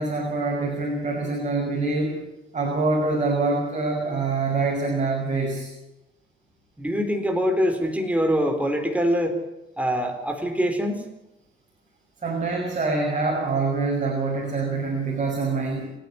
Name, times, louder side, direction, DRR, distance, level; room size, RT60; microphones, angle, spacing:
voice 1, 0.0-2.3 2.5-5.7 12.2-15.9, right 3 dB, 40° right, 0 dB, 6.2 m, -25 dB
voice 2, 6.8-9.4 9.8-11.1, equal, 5° right, 4 dB, 4.1 m, -24 dB
28.5 x 10.5 x 9.6 m, 0.94 s
cardioid pair, 90°, 20 cm